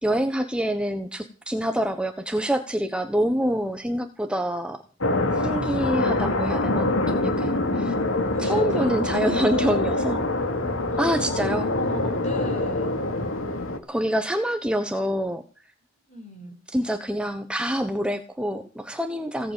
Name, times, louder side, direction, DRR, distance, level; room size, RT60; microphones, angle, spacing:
voice 1, 0.0-4.8 5.3-7.9 8.4-10.2 11.0-11.7 13.9-15.4 16.7-19.5, equal, 5° right, 7 dB, 1.2 m, -26 dB
sound 1, 5.0-13.8, left 2 dB, 85° left, 2.8 m, -25 dB
voice 2, 8.3-10.1 10.9-13.0 15.9-16.6, left 1 dB, 35° left, 5 dB, 5.7 m, -39 dB
18.5 x 7.9 x 8.9 m, 0.35 s
head